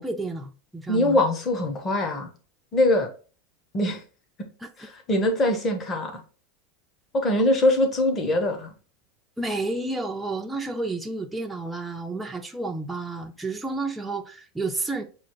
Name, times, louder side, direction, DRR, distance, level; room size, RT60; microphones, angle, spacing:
voice 1, 0.0-1.2 4.6-4.7 9.4-15.0, right 2 dB, 5° right, 0.4 m, -31 dB
voice 2, 0.9-2.3 2.7-3.1 3.7-4.0 4.8-6.2 7.1-8.7, left 1 dB, 25° left, 0.9 m, -22 dB
6.0 x 2.4 x 3.0 m
supercardioid pair, 155°, 0 cm